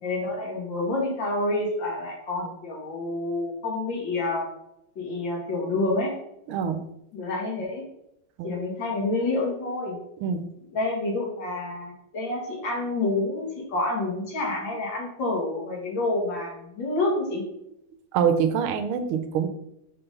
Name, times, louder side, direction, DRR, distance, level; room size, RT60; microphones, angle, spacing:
voice 1, 0.0-4.4 5.0-6.1 7.1-7.8 8.4-10.0 10.7-17.4, left 2 dB, 65° left, -2 dB, 2.6 m, -28 dB
voice 2, 6.5-6.8 8.4-8.5 10.2-10.5 18.1-19.5, right 7 dB, 85° right, 9 dB, 1.6 m, -25 dB
6.0 x 5.9 x 3.9 m, 0.80 s
omnidirectional pair, 2.3 m